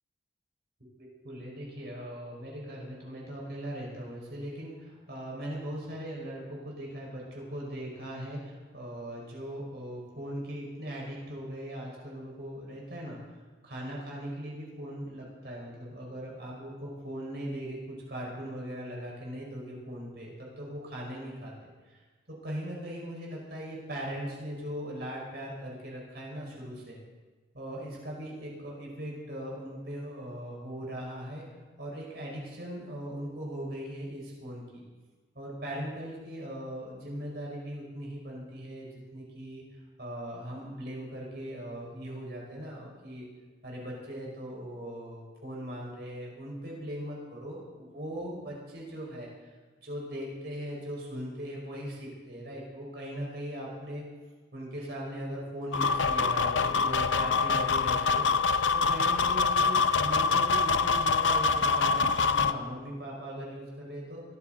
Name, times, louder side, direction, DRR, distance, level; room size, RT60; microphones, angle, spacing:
voice 1, 1.0-13.2 13.6-21.5 21.9-22.0 22.3-27.0 27.5-31.4 31.8-34.8 35.4-39.6 40.0-43.3 43.6-49.5 49.8-54.0 54.5-58.3 58.7-64.2, equal, 60° right, -3 dB, 5.2 m, -39 dB
sound 1, 55.7-62.5, left 4 dB, 85° left, 0.6 m, -25 dB
23.5 x 13.5 x 4.0 m, 1.3 s
head